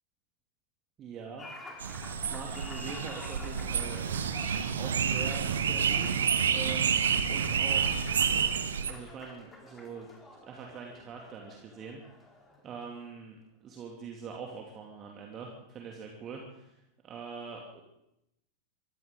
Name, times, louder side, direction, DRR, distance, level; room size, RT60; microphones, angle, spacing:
voice 1, 1.0-1.5 1.7-4.3 4.7-6.2 6.5-8.0 8.9-10.1 10.5-12.0 12.6-16.7 17.0-17.8, right 6 dB, 30° right, 0 dB, 2.6 m, -43 dB
Applause, 1.4-13.1, left 2 dB, 15° left, 3.7 m, -48 dB
sound 1, 1.8-8.9, right 7 dB, 65° right, 1.3 m, -29 dB
23.5 x 15.5 x 3.9 m, 0.83 s
figure-of-eight pair, 90°, 0 cm